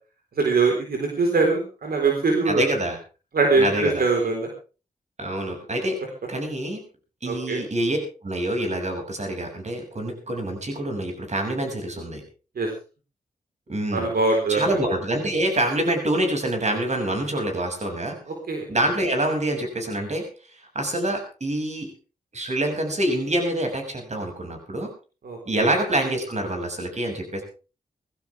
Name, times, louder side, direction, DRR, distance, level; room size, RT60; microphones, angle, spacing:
voice 1, 0.4-2.6 3.3-4.5 7.3-7.6 12.6-12.7 13.9-14.8 18.3-18.7 25.2-25.7, right 3 dB, 80° right, 1 dB, 4.2 m, -22 dB
voice 2, 2.4-3.0 3.6-4.0 5.2-6.0 6.3-6.8 7.2-8.0 8.2-12.2 13.7-14.1 14.5-18.1 18.7-20.2 20.7-21.9 22.3-24.9 25.4-27.4, right 1 dB, 50° right, 3 dB, 6.6 m, -26 dB
20.0 x 15.5 x 3.5 m, 0.35 s
cardioid pair, 60°, 16 cm